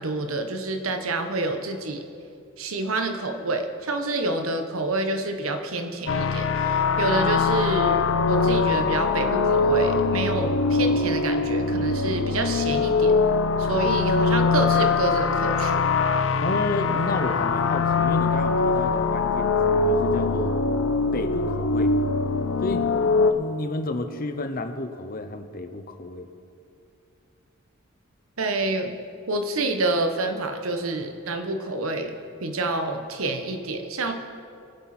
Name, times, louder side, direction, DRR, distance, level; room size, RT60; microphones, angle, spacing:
voice 1, 0.0-2.0 2.6-13.1 13.6-15.8 28.4-28.9 29.3-32.1 32.4-34.1, right 2 dB, 80° right, 6 dB, 1.2 m, -27 dB
sound 1, 6.1-23.3, left 4 dB, 70° left, 0.7 m, -22 dB
voice 2, 16.4-20.5 21.1-21.9 22.6-26.3, left 2 dB, 45° left, 7 dB, 0.9 m, -31 dB
23.5 x 8.2 x 4.4 m, 2.5 s
head